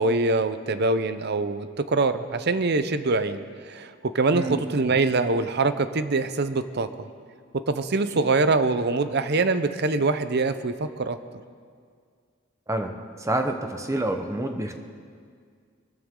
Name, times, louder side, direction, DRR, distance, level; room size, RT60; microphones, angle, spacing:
voice 1, 0.0-6.9 7.5-11.2, right 3 dB, 55° right, 11 dB, 0.7 m, -24 dB
voice 2, 4.3-4.6 12.7-14.7, right 1 dB, 15° right, 5 dB, 1.0 m, -28 dB
23.5 x 13.5 x 3.8 m, 2.1 s
head